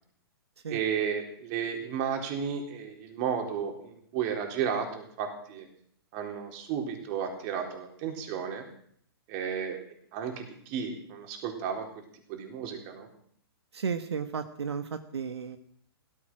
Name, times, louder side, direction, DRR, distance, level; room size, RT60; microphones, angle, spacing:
voice 1, 0.7-5.7 6.1-8.6 9.3-9.8 10.1-11.9 12.3-13.1, right 7 dB, 40° right, 4 dB, 4.0 m, -33 dB
voice 2, 13.7-15.6, right 6 dB, 85° right, 9 dB, 1.4 m, -33 dB
16.5 x 14.0 x 6.3 m, 0.63 s
hypercardioid pair, 140°, 13 cm